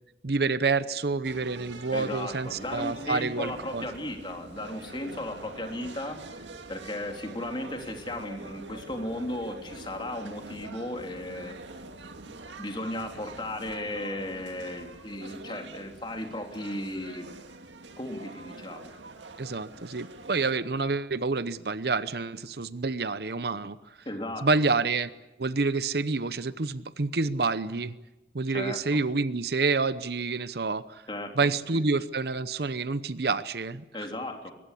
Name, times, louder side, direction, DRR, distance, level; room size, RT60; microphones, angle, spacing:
voice 1, 0.2-3.9 19.4-23.8 24.4-25.1 25.4-28.0 28.3-31.0 31.4-33.8, right 4 dB, 60° right, 15 dB, 0.8 m, -28 dB
sound 1, 1.2-20.5, right 2 dB, 85° right, 2.1 m, -45 dB
voice 2, 1.9-11.8 12.6-17.3 18.0-18.9 24.0-24.5 28.5-29.0 31.1-31.8 33.9-34.5, left 1 dB, 25° left, 3 dB, 3.3 m, -36 dB
23.5 x 21.0 x 8.4 m, 1.0 s
head